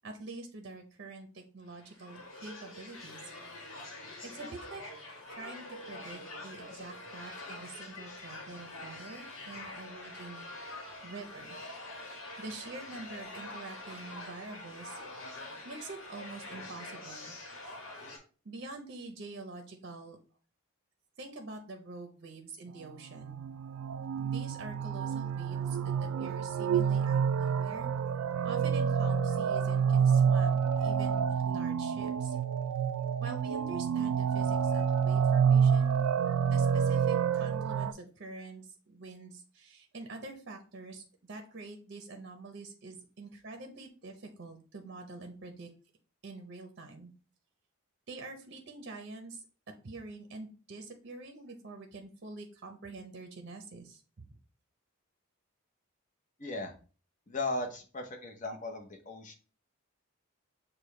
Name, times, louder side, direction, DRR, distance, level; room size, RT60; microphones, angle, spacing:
voice 1, 0.0-3.3 4.3-4.8 5.3-10.5 11.0-11.6 12.4-15.0 15.6-17.4 18.4-20.2 21.2-23.4 24.2-27.9 28.4-32.4 33.2-36.0 36.5-45.7 46.2-47.1 48.1-49.4 49.8-54.0, right 3 dB, 50° right, 4 dB, 0.6 m, -46 dB
sound 1, 1.7-18.2, left 2 dB, 70° left, 1.2 m, -45 dB
sound 2, 23.2-37.9, right 7 dB, 85° right, 0.3 m, -28 dB
sound 3, 29.0-31.3, left 10 dB, 90° left, 0.4 m, -46 dB
voice 2, 56.4-56.7 57.3-59.3, left 2 dB, 35° left, 4 dB, 0.7 m, -37 dB
6.5 x 2.2 x 3.2 m, 0.37 s
head